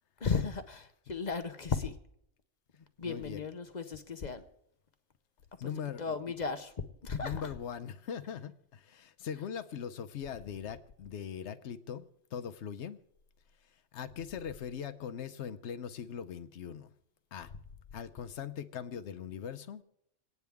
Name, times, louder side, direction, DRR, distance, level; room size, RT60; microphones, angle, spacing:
voice 1, 0.2-1.9 3.0-4.4 6.0-6.7 7.0-7.4, left 5 dB, 40° left, 8 dB, 0.8 m, -35 dB
voice 2, 3.0-3.5 5.6-6.1 7.2-13.0 13.9-16.9 17.3-17.5 17.9-19.8, left 8 dB, 65° left, 10 dB, 1.0 m, -41 dB
27.5 x 9.6 x 3.5 m, 0.78 s
omnidirectional pair, 1.3 m